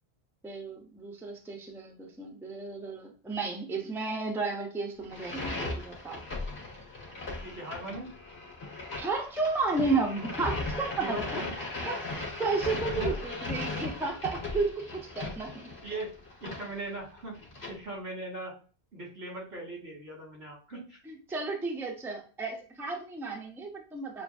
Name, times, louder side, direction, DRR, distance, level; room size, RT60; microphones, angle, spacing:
voice 1, 0.4-6.2 9.0-11.4 11.8-15.7 21.1-24.2, right 3 dB, 5° right, 1 dB, 0.6 m, -33 dB
sound 1, 5.0-17.7, left 2 dB, 80° left, 1.8 m, -37 dB
voice 2, 7.4-8.1 11.0-11.5 12.9-13.1 15.8-16.1 16.4-17.3 17.7-18.5 18.9-21.0, right 2 dB, 85° right, -3 dB, 2.3 m, -39 dB
6.5 x 2.5 x 2.6 m, 0.37 s
omnidirectional pair, 1.1 m